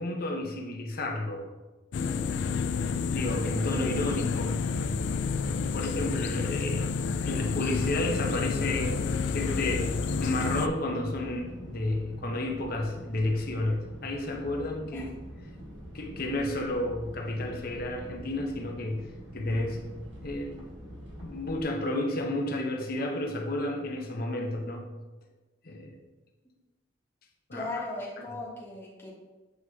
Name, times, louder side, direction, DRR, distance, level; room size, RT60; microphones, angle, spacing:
voice 1, 0.0-1.5 3.1-4.7 5.7-6.9 7.2-15.1 15.9-19.8 20.2-20.6 21.2-24.9 25.6-26.0 27.5-27.8 28.2-28.3, left 1 dB, 55° left, 2 dB, 0.9 m, -31 dB
sound 1, 1.9-10.7, left 5 dB, 70° left, 0.4 m, -30 dB
sound 2, 2.0-21.6, equal, 80° right, 1.3 m, -45 dB
voice 2, 27.5-29.1, left 2 dB, 15° left, -5 dB, 1.5 m, -37 dB
8.1 x 4.7 x 2.8 m, 1.2 s
head